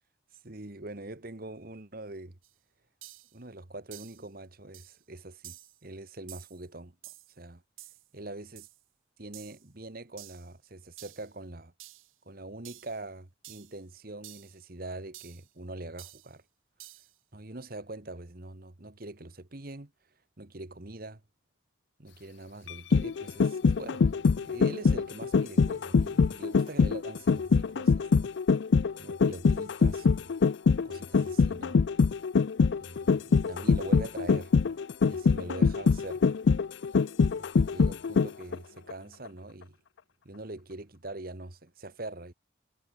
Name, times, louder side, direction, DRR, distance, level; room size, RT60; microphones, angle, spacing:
voice 1, 0.4-2.4 3.3-7.6 8.1-8.7 9.2-11.7 12.2-16.4 17.3-19.9 20.4-21.2 22.0-28.3 28.9-30.3 30.8-31.8 32.8-34.8 35.1-36.4 37.4-39.8 40.2-42.3, right 2 dB, 45° right, 1.5 m, -43 dB
sound 1, 2.4-2.5 3.0-3.4 3.9-4.3 4.7-5.0 5.4-5.8 6.3-6.6 7.0-7.4 7.8-8.1 8.6-8.8 9.3-9.7 10.2-10.5 11.0-11.3 11.8-12.1 12.6-13.0 13.4-13.8 14.2-14.6 15.1-15.5 16.0-16.3 16.8-17.1, right 15 dB, 90° right, 3.0 m, -50 dB
sound 2, 22.7-38.6 38.9-39.0, left 5 dB, 60° left, 0.4 m, -24 dB
sound 3, 35.3-40.4, left 2 dB, 90° left, 3.6 m, -61 dB
head